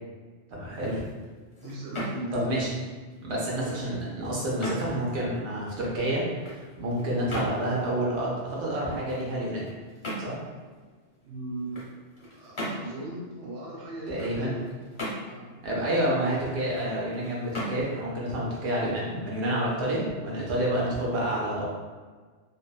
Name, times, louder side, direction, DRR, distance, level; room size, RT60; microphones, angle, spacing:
voice 1, 0.5-1.0 2.3-2.7 3.2-9.7 10.2-10.4 14.1-14.5 15.6-21.7, right 1 dB, 65° right, -5 dB, 0.9 m, -29 dB
sound 1, 0.6-19.5, equal, 35° left, 0.5 m, -41 dB
voice 2, 1.6-2.5 11.3-11.8 12.3-14.9 15.3-15.5, right 2 dB, 45° right, -5 dB, 0.5 m, -38 dB
2.6 x 2.1 x 2.3 m, 1.5 s
omnidirectional pair, 1.3 m